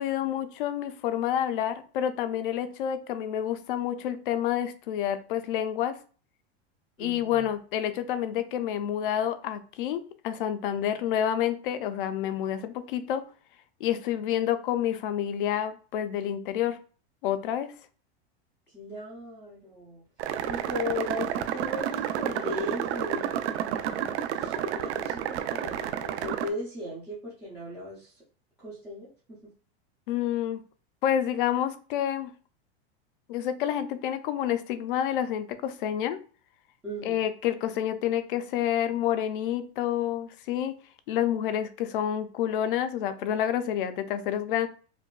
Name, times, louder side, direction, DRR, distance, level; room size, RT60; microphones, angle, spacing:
voice 1, 0.0-6.0 7.0-13.2 13.8-16.8 17.2-17.7 30.1-30.6 31.0-32.3 33.3-36.2 37.0-40.8 41.1-44.7, left 10 dB, 55° left, 11 dB, 0.4 m, -28 dB
voice 2, 7.0-7.4 18.7-20.0 20.4-28.2 28.6-29.5 36.8-37.2, left 2 dB, 5° right, -10 dB, 0.4 m, -37 dB
sound 1, 20.2-26.5, right 9 dB, 85° right, 0.5 m, -30 dB
5.1 x 2.2 x 2.3 m, 0.40 s
supercardioid pair, 175°, 33 cm